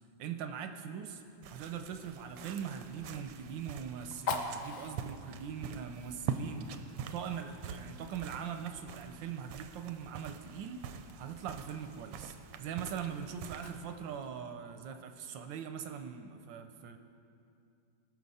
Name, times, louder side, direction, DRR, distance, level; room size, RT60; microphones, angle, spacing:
voice 1, 0.2-1.2 1.5-17.0, right 7 dB, 75° right, 7 dB, 1.1 m, -41 dB
Fire, 1.1-14.4, left 4 dB, 90° left, 0.7 m, -47 dB
sound 1, 1.4-14.2, right 7 dB, 90° right, 1.5 m, -45 dB
18.0 x 6.2 x 4.1 m, 2.6 s
omnidirectional pair, 2.4 m